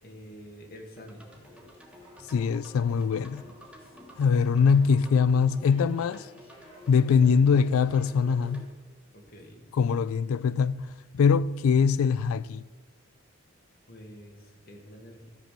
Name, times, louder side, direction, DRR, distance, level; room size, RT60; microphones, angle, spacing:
voice 1, 0.0-1.2 9.1-9.7 13.9-15.3, equal, 45° left, 2.1 m, -47 dB
sound 1, 1.0-8.7, left 1 dB, 5° right, 1.3 m, -50 dB
sound 2, 1.2-8.7, equal, 25° left, 4.5 m, -57 dB
voice 2, 2.3-3.4 4.2-6.3 6.9-8.7 9.7-12.6, left 6 dB, 75° left, 0.3 m, -23 dB
13.0 x 7.6 x 6.6 m
head